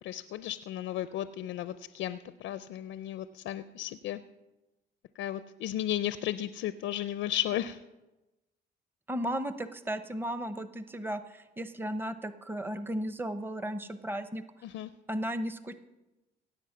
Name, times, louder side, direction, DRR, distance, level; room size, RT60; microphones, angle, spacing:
voice 1, 0.0-4.2 5.2-7.8 14.6-14.9, left 12 dB, 85° left, 13 dB, 0.5 m, -34 dB
voice 2, 9.1-14.4 15.1-15.8, equal, 10° right, 11 dB, 0.7 m, -35 dB
17.0 x 8.0 x 5.8 m, 1.0 s
cardioid pair, 90°, 20 cm